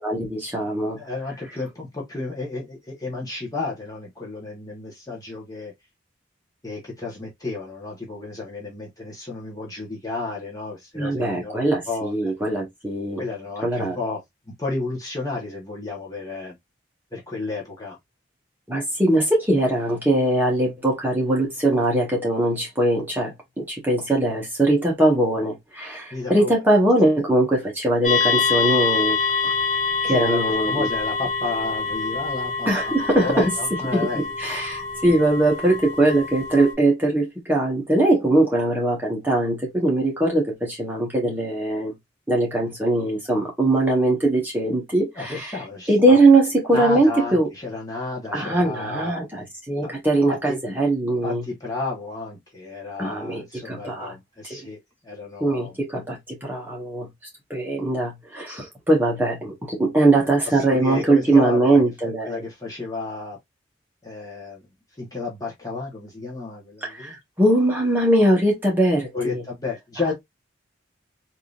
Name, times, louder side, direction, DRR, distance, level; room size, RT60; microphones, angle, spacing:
voice 1, 0.0-1.0 10.9-13.2 13.6-14.0 18.7-29.2 29.4-29.5 30.0-30.9 32.7-33.5 33.9-34.1 34.4-41.9 42.3-45.5 45.9-47.5 48.3-51.4 53.0-54.1 54.4-54.6 55.4-57.1 57.5-62.4 66.8-69.4, right 1 dB, 10° right, 1.3 m, -21 dB
voice 2, 1.0-5.7 6.6-12.3 13.2-14.2 14.6-16.6 17.1-18.0 26.1-26.6 30.0-34.3 45.1-46.2 46.7-49.5 49.8-49.9 50.3-50.6 51.2-55.7 60.5-61.8 62.2-63.4 64.0-64.6 65.0-67.2 69.1-70.1, left 3 dB, 20° left, 1.1 m, -32 dB
sound 1, 28.0-36.7, left 5 dB, 35° left, 1.5 m, -26 dB
3.6 x 2.8 x 2.4 m
head